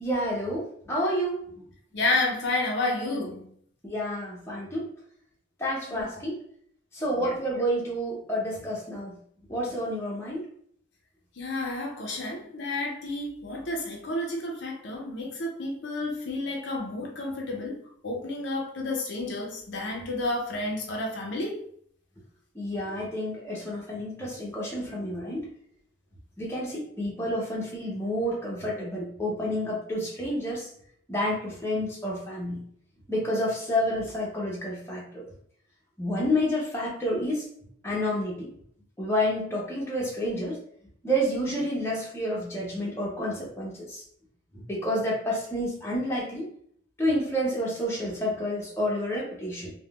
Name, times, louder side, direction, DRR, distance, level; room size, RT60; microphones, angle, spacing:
voice 1, 0.0-1.6 2.8-2.9 3.8-4.9 5.6-6.4 6.9-9.2 9.5-10.5 22.5-25.5 26.4-30.7 31.1-32.6 33.1-35.3 36.0-37.5 37.8-38.5 39.0-40.6 41.0-44.0 44.5-46.5 47.0-49.7, equal, 15° left, 0.7 m, -29 dB
voice 2, 1.9-3.4 5.9-6.0 7.2-7.3 11.4-21.6, left 2 dB, 60° left, 0.5 m, -31 dB
3.5 x 2.1 x 2.3 m
head